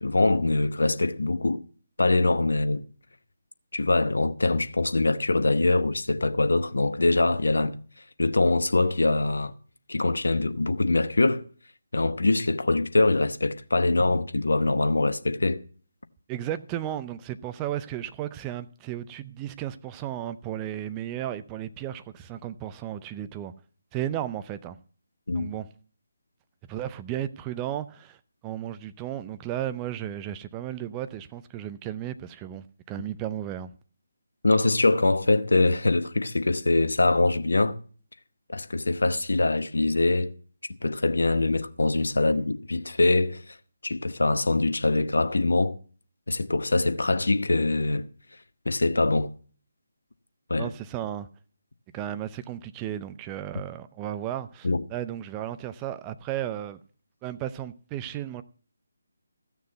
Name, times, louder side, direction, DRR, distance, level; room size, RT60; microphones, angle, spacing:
voice 1, 0.0-1.6 2.0-2.9 3.7-7.8 8.2-9.5 9.9-11.4 11.9-15.6 25.3-25.5 34.4-37.8 38.5-40.3 40.7-43.6 43.8-45.8 46.3-48.1 48.7-49.3 50.5-50.7 54.6-54.8, left 2 dB, 65° left, 0.9 m, -23 dB
voice 2, 16.3-23.5 23.9-24.8 25.3-25.7 26.7-28.2 28.4-33.7 50.6-51.3 51.9-56.8 57.2-58.4, right 11 dB, 15° right, 0.5 m, -34 dB
15.0 x 6.6 x 6.8 m
figure-of-eight pair, 150°, 0 cm